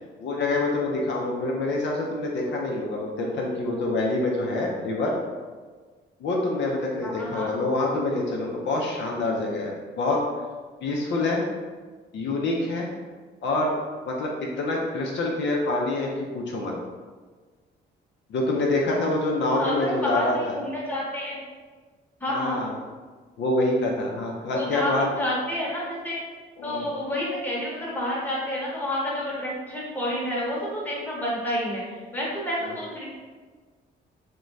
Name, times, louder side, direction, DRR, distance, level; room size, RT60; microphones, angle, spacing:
voice 1, 0.2-5.1 6.2-10.2 10.8-11.4 12.1-12.9 13.4-13.7 14.1-16.7 18.3-20.5 22.3-22.7 23.4-25.1 26.6-26.9 32.6-32.7, left 2 dB, 65° left, -2 dB, 0.5 m, -26 dB
voice 2, 7.0-7.5 19.5-21.4 22.2-22.6 24.5-26.2 26.6-33.0, left 1 dB, 10° left, -5 dB, 0.9 m, -29 dB
2.5 x 2.2 x 3.1 m, 1.4 s
cardioid pair, 90°, 20 cm